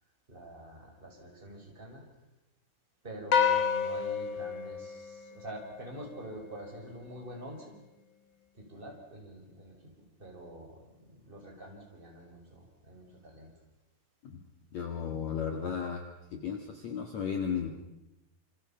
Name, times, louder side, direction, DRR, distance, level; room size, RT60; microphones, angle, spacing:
voice 1, 0.3-2.0 3.0-7.8 8.5-9.8 10.2-13.5, right 1 dB, 15° right, 1 dB, 5.3 m, -46 dB
sound 1, 3.3-5.8, left 7 dB, 85° left, 1.0 m, -29 dB
voice 2, 14.7-16.0 16.3-17.7, left 7 dB, 50° left, 4 dB, 2.7 m, -34 dB
27.5 x 27.5 x 5.7 m, 0.95 s
omnidirectional pair, 4.4 m